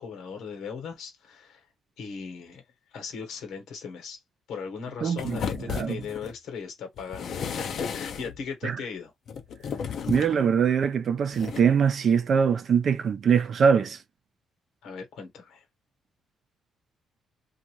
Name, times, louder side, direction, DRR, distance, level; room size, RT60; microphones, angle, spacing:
voice 1, 0.0-1.7 2.0-2.6 2.9-4.2 4.5-9.1 14.8-15.6, left 5 dB, 80° left, 1.1 m, -38 dB
voice 2, 5.0-5.4 5.7-6.0 8.6-8.8 10.1-14.0, right 7 dB, 55° right, 0.5 m, -23 dB
sound 1, 5.2-6.4 7.0-8.4 9.3-10.4 11.3-11.6, left 7 dB, 65° left, 0.5 m, -34 dB
2.6 x 2.4 x 3.0 m
cardioid pair, 90°, 0 cm